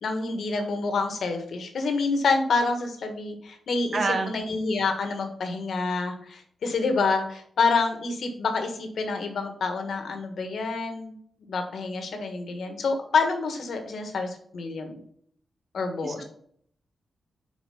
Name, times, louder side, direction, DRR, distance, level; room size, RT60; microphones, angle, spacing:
voice 1, 0.0-11.1 11.5-14.9 15.7-16.2, left 4 dB, 75° left, 5 dB, 1.3 m, -27 dB
voice 2, 3.9-4.3 16.0-16.2, right 3 dB, 60° right, 5 dB, 1.3 m, -27 dB
5.0 x 4.9 x 5.4 m, 0.63 s
supercardioid pair, 45°, 0 cm